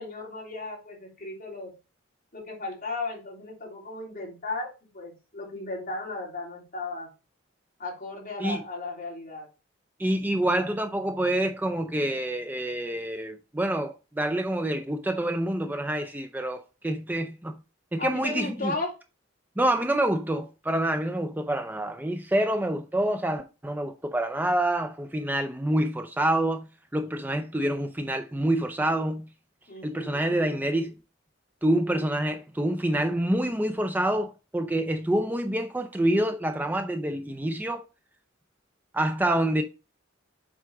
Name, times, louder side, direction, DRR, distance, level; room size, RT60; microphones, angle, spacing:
voice 1, 0.0-1.7 2.3-7.1 7.8-9.5 18.0-18.9 29.7-30.4 32.9-33.0, left 3 dB, 45° left, 3.0 m, -35 dB
voice 2, 10.0-17.6 17.9-18.7 19.6-26.7 26.9-29.3 29.8-30.9 31.6-37.8 38.9-39.6, right 1 dB, 10° right, 0.4 m, -27 dB
7.5 x 4.8 x 3.5 m
head